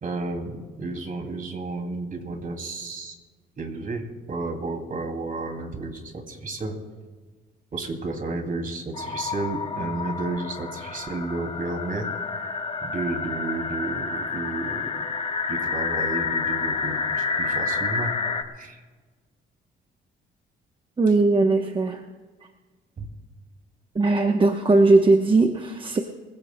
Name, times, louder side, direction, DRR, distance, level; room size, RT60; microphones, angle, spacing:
voice 1, 0.0-3.2 3.6-6.8 7.7-15.0 15.5-18.1 18.6-18.8 23.0-23.1, right 3 dB, 45° right, 4 dB, 2.5 m, -32 dB
sound 1, 8.9-18.4, left 5 dB, 30° left, 1.3 m, -29 dB
voice 2, 21.0-22.0 23.9-26.0, right 3 dB, 25° right, 4 dB, 0.9 m, -19 dB
26.0 x 16.0 x 2.2 m, 1.4 s
cardioid pair, 90°, 20 cm